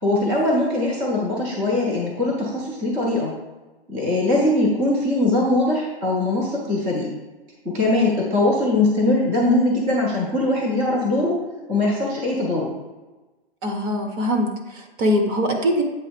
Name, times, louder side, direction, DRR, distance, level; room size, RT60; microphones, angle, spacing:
voice 1, 0.0-3.4 3.9-7.1 7.6-11.4 11.7-12.7, left 2 dB, 5° right, -3 dB, 0.3 m, -21 dB
voice 2, 13.6-15.8, equal, 25° right, 3 dB, 0.7 m, -22 dB
7.7 x 3.0 x 5.0 m, 1.2 s
hypercardioid pair, 155°, 32 cm